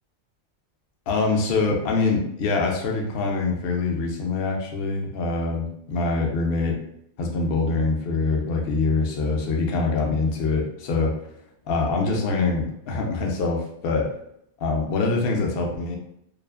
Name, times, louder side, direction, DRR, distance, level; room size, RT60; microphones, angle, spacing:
voice 1, 1.1-6.8 7.2-11.1 11.7-14.1 14.6-16.0, left 3 dB, 65° left, 1 dB, 0.7 m, -24 dB
2.5 x 2.4 x 2.3 m, 0.75 s
omnidirectional pair, 1.2 m